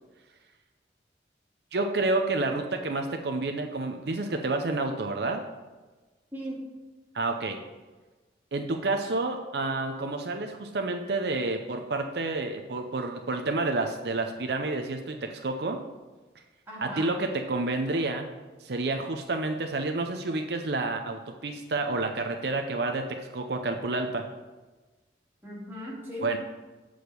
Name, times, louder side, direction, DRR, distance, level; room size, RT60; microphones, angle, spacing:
voice 1, 1.7-5.4 7.1-7.6 8.5-15.8 16.8-18.3 18.6-24.3 26.2-26.4, right 2 dB, 70° right, 4 dB, 0.6 m, -29 dB
voice 2, 16.7-17.1 25.4-26.4, equal, 15° right, -6 dB, 2.3 m, -37 dB
7.9 x 5.0 x 6.7 m, 1.3 s
head